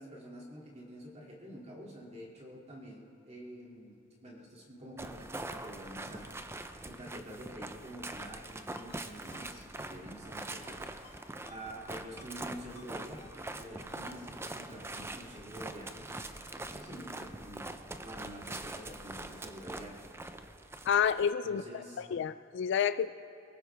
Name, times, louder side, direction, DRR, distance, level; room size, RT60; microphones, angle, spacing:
voice 1, 0.0-6.4 6.8-10.8 11.0-11.2 11.5-16.1 16.4-17.6 18.0-19.9 21.4-22.0, equal, 35° right, -3 dB, 2.6 m, -47 dB
sound 1, 5.0-21.3, right 2 dB, 15° right, 0.5 m, -43 dB
Ringtone, 8.0-8.2 8.7-9.0 9.3-9.5 9.7-9.9 10.5-10.7 11.0-11.2 11.5-11.6 12.2-12.4 12.7-12.9 13.2-13.3 13.9-14.2 14.5-14.6, left 4 dB, 35° left, 3.3 m, -56 dB
voice 2, 20.9-21.6 22.0-23.1, left 8 dB, 65° left, 12 dB, 0.3 m, -29 dB
23.5 x 17.5 x 3.5 m, 2.9 s
head